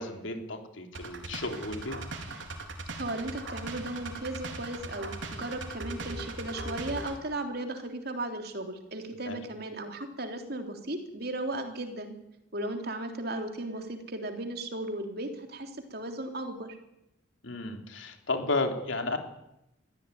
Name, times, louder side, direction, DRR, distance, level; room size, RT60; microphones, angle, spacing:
voice 1, 0.0-2.0 9.3-9.4 17.4-19.2, left 2 dB, 80° left, 4 dB, 3.4 m, -33 dB
sound 1, 0.9-7.2, right 2 dB, 70° right, 3.8 m, -39 dB
voice 2, 2.9-12.1 12.5-16.8, right 1 dB, 55° right, 5 dB, 3.3 m, -36 dB
22.5 x 15.5 x 9.5 m, 0.86 s
head